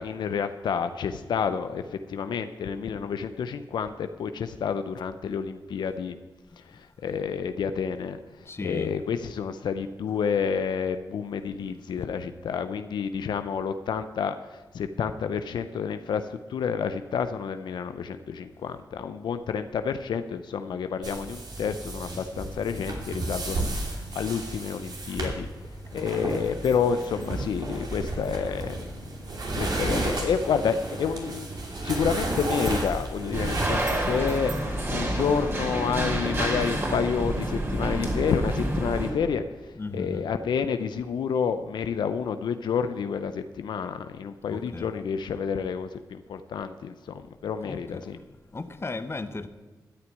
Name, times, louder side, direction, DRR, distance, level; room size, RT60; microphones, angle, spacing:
voice 1, 0.0-6.2 6.6-29.0 29.6-31.5 31.8-48.2, left 6 dB, 85° left, 9 dB, 0.5 m, -29 dB
voice 2, 8.5-8.9 23.3-23.4 39.8-40.2 44.5-44.9 48.5-49.5, left 3 dB, 35° left, 10 dB, 0.9 m, -35 dB
sound 1, 21.0-34.7, right 2 dB, 65° right, 2.7 m, -32 dB
sound 2, 33.3-39.1, right 1 dB, 35° right, 3.1 m, -28 dB
13.0 x 6.0 x 9.1 m, 1.3 s
cardioid pair, 60°, 7 cm